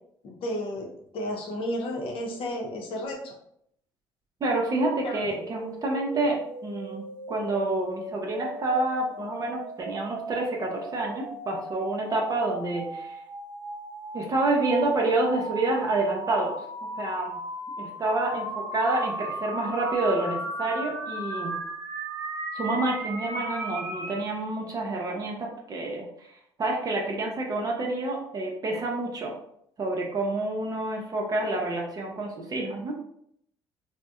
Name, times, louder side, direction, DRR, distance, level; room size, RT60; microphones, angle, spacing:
voice 1, 0.2-3.3 5.0-5.2, left 1 dB, 60° left, 1 dB, 0.6 m, -32 dB
voice 2, 4.4-13.2 14.1-16.5 17.0-17.3 17.8-21.6 22.5-26.3 26.6-29.3 29.8-33.0, right 2 dB, 35° right, -1 dB, 0.6 m, -28 dB
sound 1, 5.3-24.2, right 1 dB, 80° right, 0.6 m, -36 dB
2.5 x 2.1 x 2.4 m, 0.71 s
supercardioid pair, 75°, 10 cm